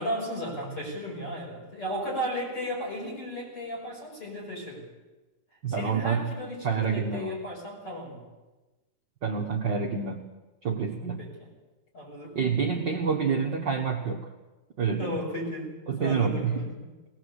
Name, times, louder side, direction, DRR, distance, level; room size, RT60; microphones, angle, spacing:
voice 1, 0.0-4.9 5.7-8.2 11.2-11.3 11.9-12.9 15.0-16.9, equal, 35° left, -1 dB, 6.8 m, -35 dB
voice 2, 5.6-6.3 6.6-7.4 9.2-10.3 10.6-11.3 12.3-14.3 14.8-15.2 15.9-16.7, right 6 dB, 80° right, 1 dB, 1.0 m, -28 dB
20.0 x 19.0 x 8.1 m, 1.1 s
omnidirectional pair, 4.2 m